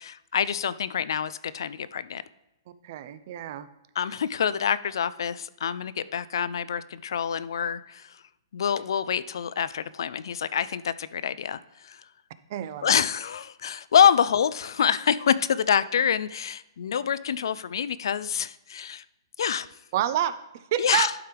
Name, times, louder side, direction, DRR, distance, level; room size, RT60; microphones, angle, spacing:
voice 1, 0.0-2.2 4.0-8.2 8.5-12.0 12.8-19.0 19.4-19.7 20.8-21.1, left 8 dB, 65° left, 16 dB, 0.3 m, -26 dB
voice 2, 2.8-3.7 12.5-13.0 19.9-21.1, right 11 dB, 35° right, 13 dB, 0.4 m, -28 dB
11.5 x 4.5 x 3.3 m, 0.96 s
hypercardioid pair, 165°, 2 cm